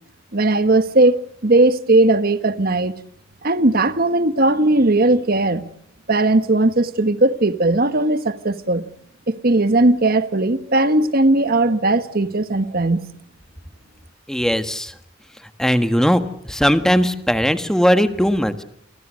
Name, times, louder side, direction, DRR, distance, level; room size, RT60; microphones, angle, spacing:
voice 1, 0.3-2.9 3.4-5.7 6.1-8.9 9.3-13.0, right 2 dB, 50° right, 1.5 m, -17 dB
voice 2, 14.3-14.9 15.6-18.6, equal, 5° left, 1.5 m, -18 dB
30.0 x 23.5 x 6.4 m
head